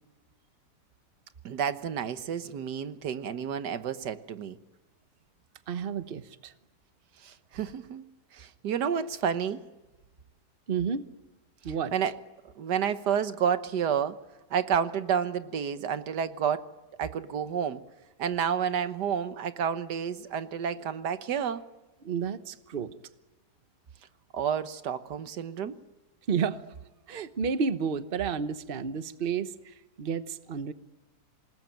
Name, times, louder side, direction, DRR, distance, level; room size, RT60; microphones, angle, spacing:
voice 1, 1.4-4.6 7.2-8.0 8.3-9.6 11.9-12.1 12.6-14.2 14.5-16.7 17.0-17.8 18.2-21.6 24.3-25.8, right 8 dB, 90° right, 1.7 m, -30 dB
voice 2, 5.7-6.5 10.7-11.1 11.6-11.9 22.0-22.9 26.3-26.6 27.1-30.7, right 6 dB, 40° right, 1.1 m, -31 dB
27.5 x 19.5 x 9.2 m
omnidirectional pair, 1.7 m